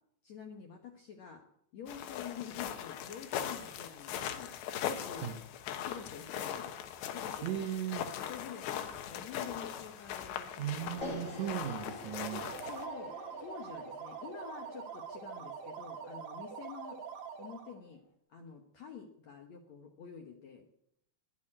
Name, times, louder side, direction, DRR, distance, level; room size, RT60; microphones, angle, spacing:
voice 1, 0.2-1.4 1.7-4.5 4.8-5.3 5.8-6.7 7.1-7.6 8.2-11.2 12.3-17.0 17.4-18.0 18.3-20.7, left 7 dB, 65° left, 4 dB, 1.7 m, -48 dB
sound 1, 1.9-12.9, left 9 dB, 90° left, 3.5 m, -40 dB
voice 2, 7.4-8.1 10.5-12.5, right 11 dB, 80° right, 5 dB, 1.6 m, -37 dB
sound 2, 11.0-17.2, left 2 dB, 20° left, 2.8 m, -47 dB
sound 3, 12.1-17.8, right 6 dB, 55° right, 2.2 m, -44 dB
21.0 x 7.3 x 8.8 m, 0.75 s
omnidirectional pair, 4.9 m